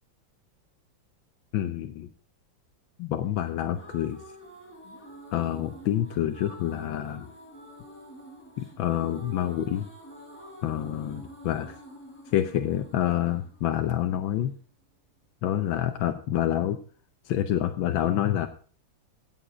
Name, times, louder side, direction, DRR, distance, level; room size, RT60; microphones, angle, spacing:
voice 1, 1.5-2.1 3.0-4.2 5.3-7.3 8.6-9.9 10.6-11.8 12.3-14.5 15.4-16.8 17.2-18.5, left 11 dB, 90° left, 7 dB, 1.6 m, -27 dB
sound 1, 3.4-14.4, equal, 5° left, 5.1 m, -47 dB
16.5 x 7.6 x 4.9 m, 0.43 s
omnidirectional pair, 2.1 m